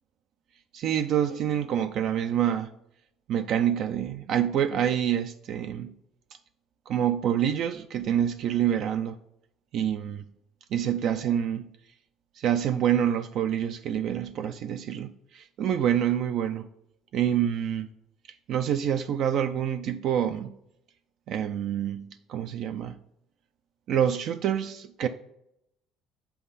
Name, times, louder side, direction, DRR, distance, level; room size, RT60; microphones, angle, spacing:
voice 1, 0.7-2.7 3.3-5.9 6.9-9.2 9.7-10.2 10.7-11.6 12.4-16.7 17.1-17.9 18.5-20.5 21.3-23.0 23.9-25.1, right 9 dB, 55° right, 0.4 m, -27 dB
7.2 x 5.6 x 4.1 m
cardioid pair, 140°, 0 cm